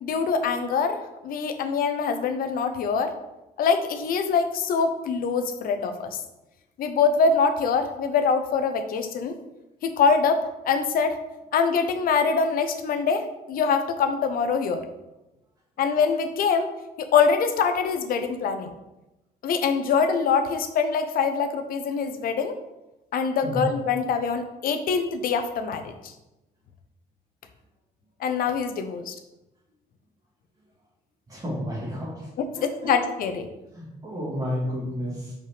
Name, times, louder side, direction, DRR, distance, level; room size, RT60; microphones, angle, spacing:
voice 1, 0.0-3.1 3.6-6.2 6.8-9.4 9.8-11.2 11.5-14.8 15.8-16.7 17.0-18.7 19.4-22.5 23.1-25.9 28.2-29.1 32.4-33.5, left 5 dB, 60° left, 8 dB, 0.8 m, -24 dB
voice 2, 31.3-32.1 32.6-32.9 33.8-35.3, equal, 20° right, -8 dB, 2.1 m, -31 dB
5.4 x 4.9 x 5.0 m, 0.96 s
cardioid pair, 135°, 16 cm